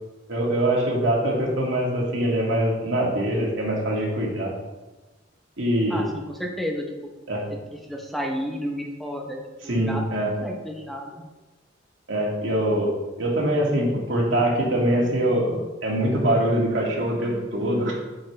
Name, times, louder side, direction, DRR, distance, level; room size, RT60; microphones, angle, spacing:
voice 1, 0.3-4.5 5.6-6.1 7.3-7.4 9.7-10.3 12.1-12.9 13.2-18.1, right 1 dB, 90° right, -3 dB, 2.1 m, -23 dB
voice 2, 5.9-6.9 7.7-10.0 10.4-11.2, equal, ahead, 0 dB, 0.8 m, -32 dB
8.7 x 6.4 x 3.3 m, 1.2 s
head